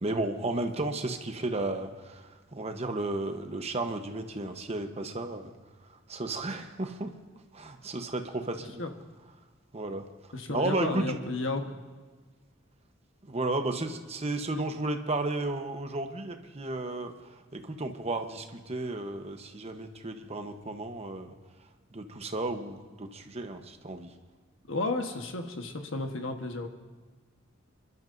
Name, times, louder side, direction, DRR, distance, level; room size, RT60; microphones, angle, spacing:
voice 1, 0.0-5.5 5.9-7.1 7.5-8.8 9.7-10.0 10.5-11.2 13.2-21.3 21.9-24.1, right 2 dB, 30° right, 6 dB, 1.0 m, -33 dB
voice 2, 10.3-11.8 24.7-26.7, left 2 dB, 70° left, 5 dB, 1.3 m, -32 dB
29.5 x 12.0 x 2.6 m, 1.4 s
head